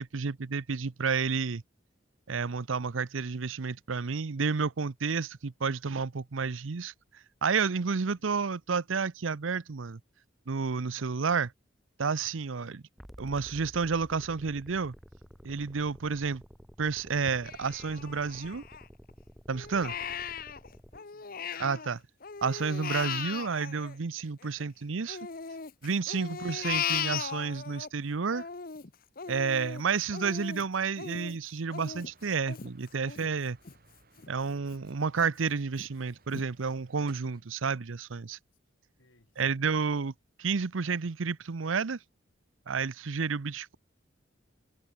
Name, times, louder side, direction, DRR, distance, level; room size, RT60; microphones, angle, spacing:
voice 1, 0.0-1.6 2.3-6.9 7.4-10.0 10.5-11.5 12.0-12.8 13.2-14.9 15.4-16.4 16.8-18.6 19.5-19.9 21.6-22.0 22.4-25.2 25.8-28.5 29.3-33.6 34.3-38.4 39.4-40.1 40.4-42.0 42.7-43.8, right 5 dB, 90° right, 0.7 m, -30 dB
voice 2, 8.1-8.5 12.6-12.8 19.8-20.2 20.9-21.7 26.2-26.6 29.9-30.3 39.0-39.6, left 1 dB, 85° left, 7.8 m, -64 dB
sound 1, 13.0-21.0, equal, ahead, 1.6 m, -51 dB
Crying sobbing, 17.4-19.1 19.5-21.9 22.2-24.6 25.1-27.9 28.3-33.8 34.2-34.3 34.7-35.3 35.8-35.9 36.3-36.5, left 7 dB, 50° left, 1.0 m, -38 dB
sound 2, 32.0-37.4, right 3 dB, 50° right, 3.0 m, -60 dB
head